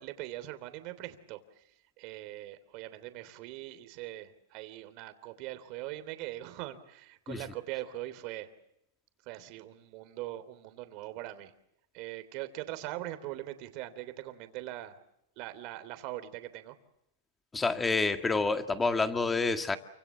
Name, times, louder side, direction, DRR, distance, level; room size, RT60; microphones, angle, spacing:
voice 1, 0.0-1.6 2.0-8.5 9.2-11.5 11.9-15.0 15.4-16.7, right 15 dB, 40° right, 11 dB, 3.2 m, -41 dB
voice 2, 17.5-19.8, left 3 dB, 10° left, 7 dB, 1.9 m, -28 dB
29.0 x 26.0 x 7.4 m, 0.80 s
supercardioid pair, 155°, 0 cm